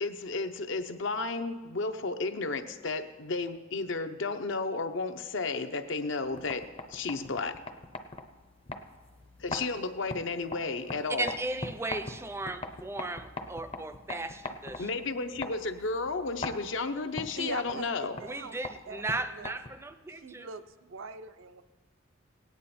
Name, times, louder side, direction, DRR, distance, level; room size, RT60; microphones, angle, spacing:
voice 1, 0.0-7.6 9.4-11.3 14.8-18.2, left 3 dB, 65° left, 8 dB, 0.7 m, -33 dB
sound 1, 6.2-20.0, left 2 dB, 30° left, 0.6 m, -43 dB
voice 2, 11.2-14.9 18.2-20.5, right 2 dB, 15° right, 11 dB, 0.5 m, -36 dB
voice 3, 17.3-18.6 18.9-19.5 20.1-20.6 20.9-21.6, right 4 dB, 75° right, 10 dB, 0.6 m, -42 dB
17.5 x 9.4 x 4.3 m, 1.3 s
head